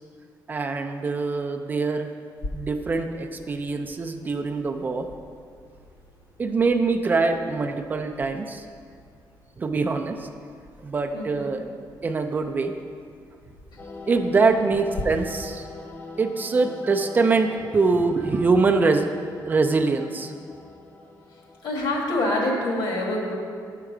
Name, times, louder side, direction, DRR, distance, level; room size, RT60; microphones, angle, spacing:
voice 1, 0.5-2.1 2.5-5.1 6.4-8.6 9.6-10.3 10.8-11.6 12.0-12.7 14.1-15.7 16.2-19.1 19.5-20.3, right 4 dB, 25° right, 6 dB, 0.3 m, -23 dB
sound 1, 2.4-15.0, left 2 dB, 55° left, 0.8 m, -44 dB
voice 2, 11.1-11.5 13.7-13.8 14.4-14.6 21.6-23.3, left 1 dB, 80° left, -1 dB, 1.7 m, -26 dB
sound 2, 13.8-21.7, left 3 dB, 25° left, 0.7 m, -42 dB
6.9 x 6.5 x 4.8 m, 2.2 s
cardioid pair, 175°, 8 cm